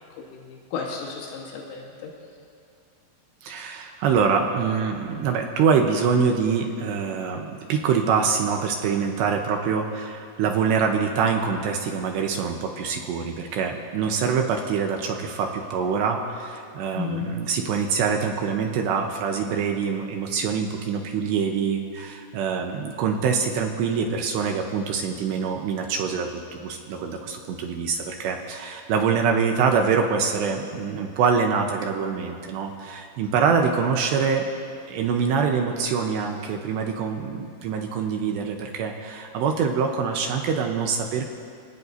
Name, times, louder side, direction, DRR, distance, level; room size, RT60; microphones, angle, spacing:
voice 1, 0.3-2.1 17.0-17.3, left 6 dB, 85° left, -2 dB, 4.1 m, -33 dB
voice 2, 3.4-34.4 34.9-41.3, right 6 dB, 75° right, 3 dB, 2.7 m, -25 dB
28.0 x 18.5 x 2.7 m, 2.3 s
omnidirectional pair, 5.7 m